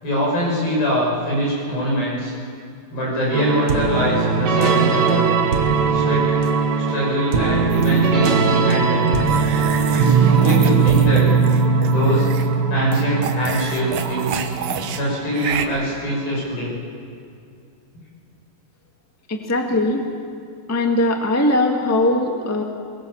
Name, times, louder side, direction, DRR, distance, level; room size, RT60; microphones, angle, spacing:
voice 1, 0.0-2.3 2.9-5.2 5.9-6.4 6.9-9.1 9.9-11.3 11.9-12.3 12.7-14.5 14.9-16.7, equal, 80° left, -4 dB, 8.6 m, -23 dB
sound 1, 3.3-15.9, right 5 dB, 85° right, 0.9 m, -19 dB
sound 2, 7.7-8.1 9.2-12.5 12.9-15.0 15.3-15.7, right 7 dB, 70° right, 2.5 m, -29 dB
voice 2, 19.3-20.1 20.7-22.6, left 1 dB, 10° left, 2 dB, 0.8 m, -20 dB
22.5 x 21.5 x 7.3 m, 2.4 s
omnidirectional pair, 4.1 m